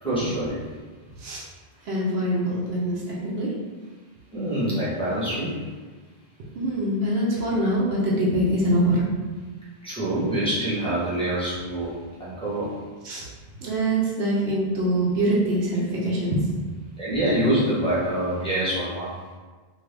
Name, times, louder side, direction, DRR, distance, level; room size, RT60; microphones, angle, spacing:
voice 1, 0.0-0.7 4.3-5.7 9.8-12.8 17.0-19.2, right 1 dB, 5° left, -11 dB, 0.9 m, -26 dB
voice 2, 1.1-1.5 1.8-3.5 6.5-9.1 13.0-13.3 13.6-16.5, right 1 dB, 90° right, -5 dB, 0.9 m, -24 dB
2.6 x 2.6 x 3.2 m, 1.4 s
omnidirectional pair, 1.0 m